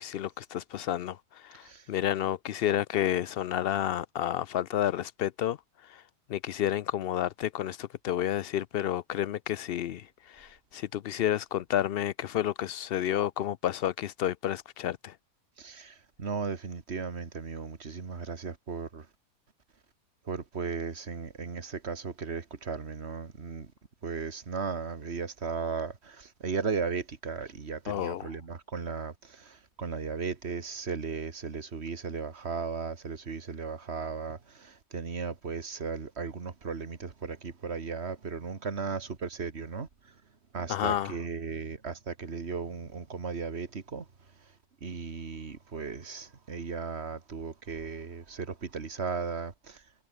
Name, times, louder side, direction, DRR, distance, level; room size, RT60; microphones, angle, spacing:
voice 1, 0.0-5.6 5.8-6.0 6.3-15.1 27.9-28.3 40.7-41.1, left 11 dB, 80° left, 0.5 m, -30 dB
voice 2, 15.6-19.1 20.3-23.7 24.0-40.1 40.5-44.1 44.8-49.8, right 5 dB, 45° right, 2.0 m, -36 dB
omnidirectional pair, 1.6 m